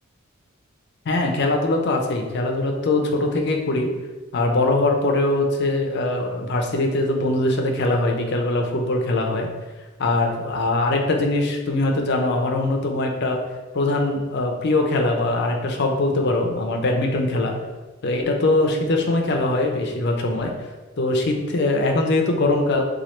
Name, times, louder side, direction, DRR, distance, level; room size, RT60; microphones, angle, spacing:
voice 1, 1.1-3.9 4.3-9.5 10.0-13.4 13.7-17.6 18.0-20.5 21.0-22.8, left 2 dB, 50° left, 2 dB, 0.5 m, -22 dB
3.0 x 2.3 x 4.3 m, 1.3 s
head